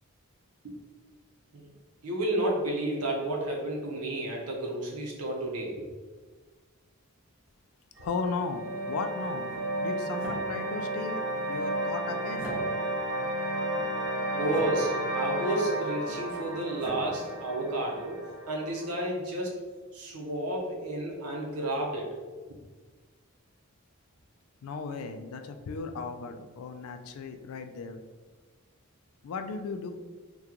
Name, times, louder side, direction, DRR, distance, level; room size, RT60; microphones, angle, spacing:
voice 1, 2.0-5.7 14.3-18.1 18.5-19.5 19.9-22.1, right 1 dB, 90° right, -1 dB, 0.7 m, -31 dB
voice 2, 8.0-9.5 9.8-11.2 11.5-12.5 24.6-28.0 29.2-29.9, left 4 dB, 80° left, 7 dB, 0.3 m, -36 dB
sound 1, 8.0-19.0, right 1 dB, 50° right, 0.5 m, -33 dB
sound 2, 9.3-18.4, right 1 dB, 5° right, 0.7 m, -46 dB
2.9 x 2.3 x 3.7 m, 1.4 s
head